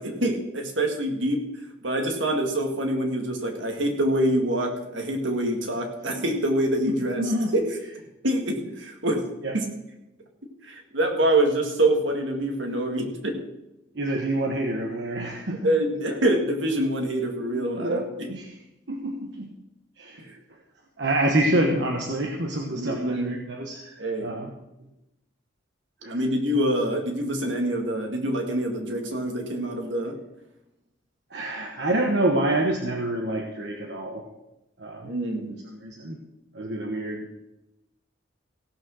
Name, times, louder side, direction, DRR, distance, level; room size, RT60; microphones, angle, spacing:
voice 1, 0.0-1.4 1.8-7.2 7.5-7.6 8.2-9.3 9.5-9.7 10.6-13.4 15.6-18.3 20.3-20.4 22.7-23.4 24.0-24.3 26.1-30.2 35.0-35.5, right 1 dB, 80° right, 3 dB, 2.0 m, -25 dB
voice 2, 6.9-7.5 9.4-9.5 13.9-15.7 17.4-18.6 18.9-19.5 20.0-20.6 21.0-24.5 26.0-26.2 31.3-34.3 34.8-35.1 35.7-36.2 36.5-37.3, right 1 dB, 60° right, 1 dB, 1.2 m, -27 dB
16.0 x 6.2 x 6.3 m, 0.92 s
head